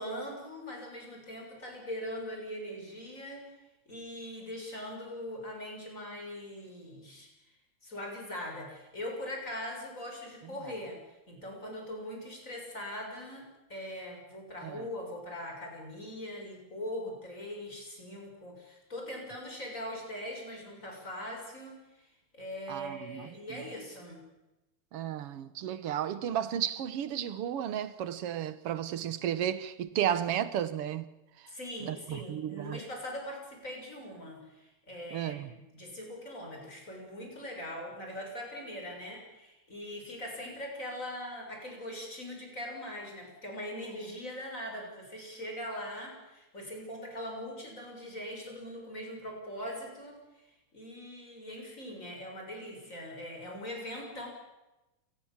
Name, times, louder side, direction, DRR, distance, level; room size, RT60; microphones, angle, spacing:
voice 1, 0.0-3.5 3.9-7.3 7.8-11.0 11.3-22.1 22.3-24.2 31.5-50.5 50.7-54.3, left 1 dB, 25° left, 7.2 m, -41 dB
voice 2, 22.7-23.7 24.9-31.1 31.8-32.8 35.1-35.5, right 10 dB, 60° right, 2.0 m, -33 dB
28.5 x 20.0 x 7.4 m
omnidirectional pair, 3.3 m